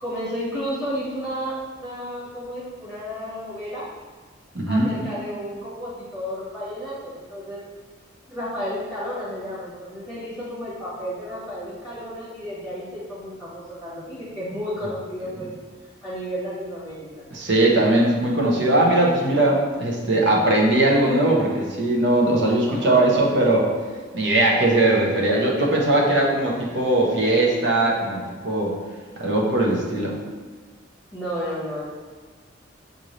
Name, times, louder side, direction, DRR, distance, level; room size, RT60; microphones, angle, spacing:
voice 1, 0.0-3.8 4.6-7.6 8.3-15.5 16.0-17.3 22.7-23.3 31.1-31.8, equal, 5° right, -10 dB, 1.1 m, -32 dB
voice 2, 4.5-4.9 17.3-23.7 24.1-28.7 29.2-30.1, right 2 dB, 60° right, -2 dB, 0.8 m, -20 dB
5.2 x 2.6 x 3.1 m, 1.5 s
head